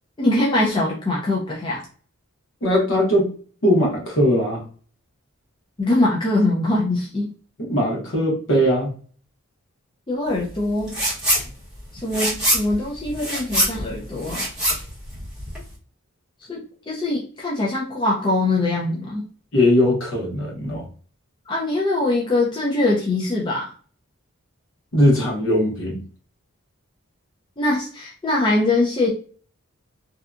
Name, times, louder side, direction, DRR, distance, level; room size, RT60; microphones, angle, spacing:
voice 1, 0.2-1.8 5.8-7.3 10.1-11.0 11.9-14.5 16.5-19.2 21.5-23.7 27.6-29.1, left 2 dB, 20° left, -4 dB, 0.4 m, -22 dB
voice 2, 2.6-3.3 3.6-4.6 7.6-8.9 19.5-20.9 24.9-26.0, equal, 60° left, -1 dB, 0.9 m, -19 dB
sound 1, 10.9-11.5 11.8-15.7, equal, 5° right, 0.9 m, -23 dB
2.7 x 2.2 x 2.4 m, 0.42 s
head